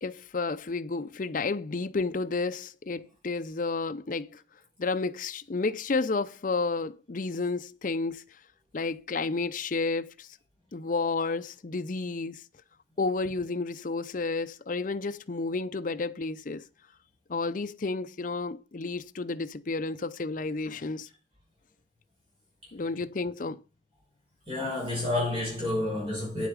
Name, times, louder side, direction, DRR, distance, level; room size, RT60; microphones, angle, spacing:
voice 1, 0.0-4.4 4.8-8.4 8.7-10.4 10.7-12.4 13.0-16.7 17.3-21.1 22.7-23.6, left 3 dB, 45° left, 0.5 m, -31 dB
voice 2, 24.5-26.5, left 2 dB, 25° right, 5.7 m, -29 dB
8.7 x 8.4 x 5.0 m
head